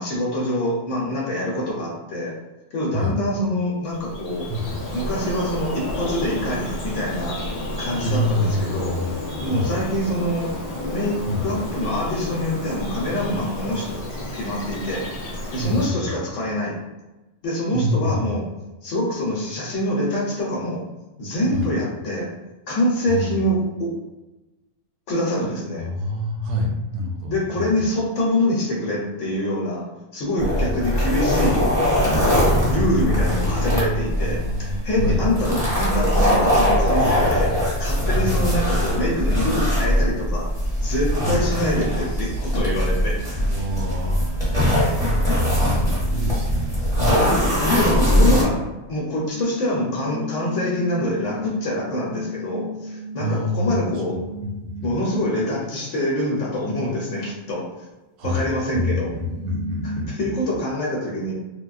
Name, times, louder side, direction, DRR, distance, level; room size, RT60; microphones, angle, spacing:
voice 1, 0.0-2.4 2.7-4.5 4.9-7.4 7.8-9.0 9.4-15.1 15.5-16.8 17.4-18.4 18.8-20.8 21.2-22.3 22.7-24.0 25.1-25.9 27.3-31.6 32.7-40.5 40.8-43.4 47.0-47.4 47.7-48.6 48.9-54.2 54.8-57.7 58.2-59.1 60.1-61.3, left 1 dB, 70° left, -3 dB, 0.9 m, -25 dB
Bird vocalization bird call bird song, 3.8-15.9, left 1 dB, 50° left, 0.4 m, -31 dB
voice 2, 4.5-4.8 8.0-9.8 11.3-11.6 15.6-16.1 17.7-18.3 21.5-21.7 23.1-23.4 25.8-27.9 30.6-31.0 32.7-35.3 38.1-38.5 41.2-41.4 43.3-44.4 45.5-46.9 47.7-48.2 48.5-48.6 53.2-54.9 58.2-60.3, left 1 dB, 75° right, 0 dB, 1.0 m, -27 dB
sound 1, 30.4-48.4, equal, 5° right, 0.9 m, -21 dB
sound 2, 43.7-46.9 49.3-55.7 59.1-60.0, left 2 dB, 30° right, 0.6 m, -35 dB
3.2 x 2.2 x 2.3 m, 1.1 s
omnidirectional pair, 1.4 m